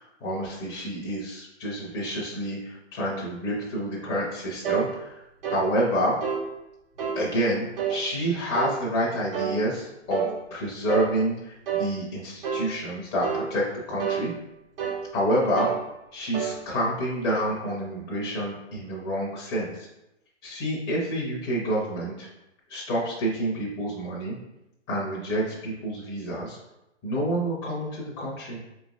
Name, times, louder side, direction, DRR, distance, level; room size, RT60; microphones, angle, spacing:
voice 1, 0.0-5.2 5.5-6.1 7.2-10.2 10.5-13.6 13.9-14.3 15.1-15.7 16.1-19.9 20.4-22.3 22.7-24.4 24.9-26.6 27.0-28.6, equal, 15° left, -5 dB, 0.5 m, -28 dB
sound 1, 4.6-4.9 5.4-5.7 6.2-6.5 7.0-7.2 7.8-8.0 8.5-8.8 9.3-9.6 10.1-10.3 10.9-11.1 11.7-11.9 12.4-12.7 13.2-13.5 14.0-14.2 14.8-15.0 15.6-15.8 16.3-16.6, right 8 dB, 50° right, 0.8 m, -28 dB
4.7 x 3.1 x 2.4 m, 0.91 s
figure-of-eight pair, 125°, 36 cm